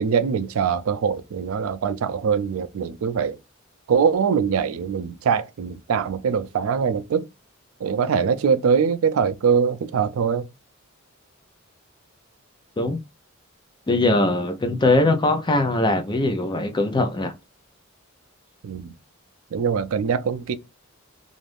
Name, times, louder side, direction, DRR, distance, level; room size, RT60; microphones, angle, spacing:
voice 1, 0.0-3.4 3.9-7.3 7.8-10.4 18.6-18.9 19.5-20.6, right 6 dB, 90° right, 0.4 m, -22 dB
voice 2, 13.9-17.3, left 2 dB, 20° left, 0.5 m, -21 dB
2.6 x 2.4 x 3.4 m
head